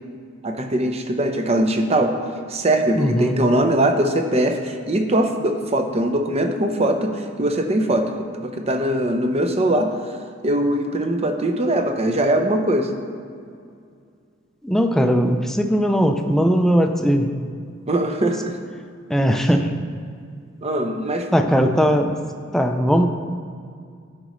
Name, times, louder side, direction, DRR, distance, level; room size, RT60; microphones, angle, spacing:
voice 1, 0.4-2.2 2.5-8.1 8.4-12.9 17.9-18.6 20.6-21.3, right 1 dB, 30° right, 4 dB, 0.7 m, -21 dB
voice 2, 3.0-3.4 14.6-17.3 18.2-18.3 19.1-19.7 21.3-22.2 22.5-23.1, equal, ahead, 4 dB, 0.4 m, -19 dB
13.0 x 5.2 x 3.1 m, 2.2 s
head